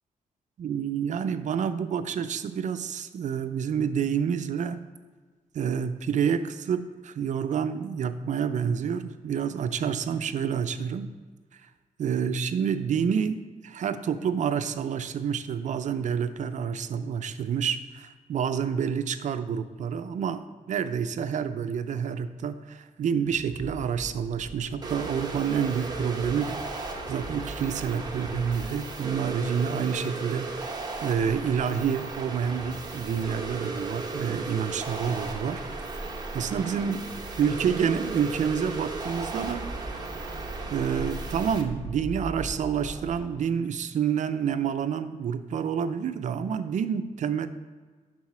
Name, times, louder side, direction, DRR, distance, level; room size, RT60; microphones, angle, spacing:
voice 1, 0.6-4.8 5.5-11.1 11.5-11.6 12.0-30.7 31.0-35.6 35.9-37.0 37.4-39.7 40.7-47.5, right 7 dB, 60° right, 11 dB, 0.5 m, -28 dB
sound 1, 23.2-43.2, right 1 dB, 25° left, 1.9 m, -42 dB
sound 2, 24.8-41.6, right 3 dB, 30° right, 0.9 m, -36 dB
10.5 x 4.1 x 4.3 m, 1.4 s
wide cardioid pair, 140°, 14 cm